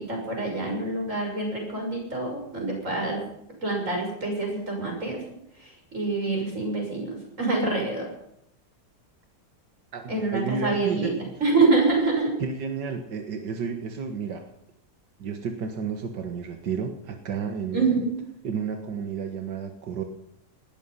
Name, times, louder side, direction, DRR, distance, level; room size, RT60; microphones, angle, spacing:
voice 1, 0.0-3.3 3.6-5.2 5.6-8.1 10.1-12.4 17.7-18.2, right 3 dB, 45° right, 1 dB, 6.7 m, -26 dB
voice 2, 9.9-11.4 12.4-14.5 15.2-18.0 18.4-20.0, right 6 dB, 85° right, 5 dB, 2.1 m, -32 dB
19.0 x 13.0 x 5.7 m, 0.76 s
omnidirectional pair, 1.8 m